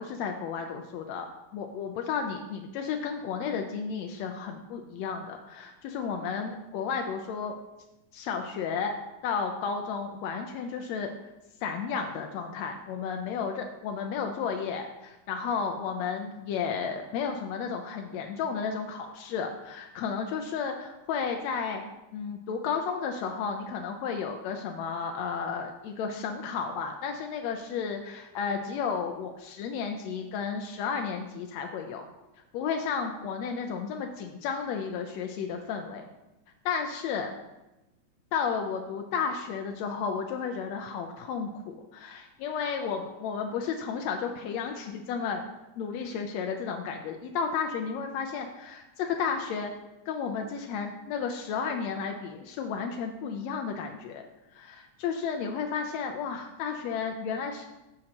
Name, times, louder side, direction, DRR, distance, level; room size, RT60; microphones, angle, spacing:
voice 1, 0.0-1.3 1.5-7.5 8.1-8.9 9.2-11.1 11.6-21.8 22.1-32.1 32.5-36.0 36.6-37.3 38.3-45.4 45.8-49.7 50.1-54.3 54.5-57.7, left 6 dB, 80° left, 3 dB, 1.6 m, -33 dB
13.5 x 6.4 x 2.9 m, 0.99 s
omnidirectional pair, 3.6 m